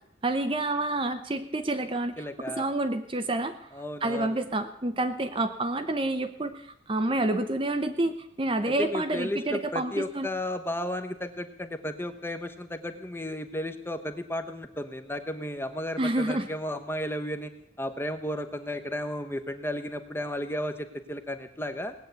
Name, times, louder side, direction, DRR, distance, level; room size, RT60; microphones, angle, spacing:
voice 1, 0.2-2.2 2.6-3.6 4.0-10.3 16.0-16.5, right 2 dB, 25° right, 8 dB, 0.7 m, -28 dB
voice 2, 2.2-2.7 3.7-4.4 8.6-17.5 17.8-21.9, left 1 dB, 10° left, 8 dB, 1.0 m, -33 dB
18.5 x 8.9 x 8.1 m, 0.78 s
head